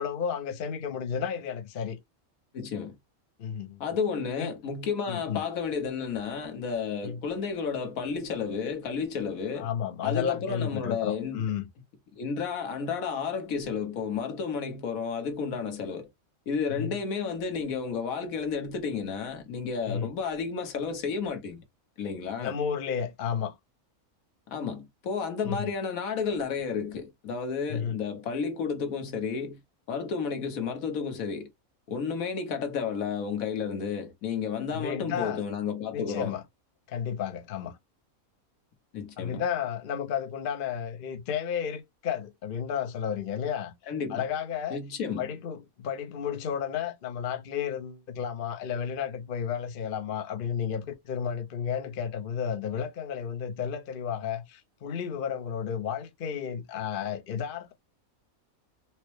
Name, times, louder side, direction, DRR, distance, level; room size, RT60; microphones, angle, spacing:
voice 1, 0.0-2.0 3.4-3.8 4.4-4.5 5.1-5.4 7.0-7.2 9.6-11.6 16.7-16.9 19.9-20.1 22.4-23.5 25.4-25.7 27.7-28.0 34.7-35.4 35.9-36.4 36.9-37.8 39.2-43.7 44.1-44.8 45.2-57.7, left 8 dB, 50° left, 0.6 m, -32 dB
voice 2, 2.5-3.0 3.8-9.7 10.0-11.4 12.2-16.1 16.5-21.6 22.0-22.5 24.5-29.6 29.9-31.5 31.9-36.3 38.9-39.4 43.9-44.2 44.7-45.3, left 6 dB, 70° left, 1.2 m, -32 dB
4.3 x 2.0 x 3.0 m
omnidirectional pair, 1.5 m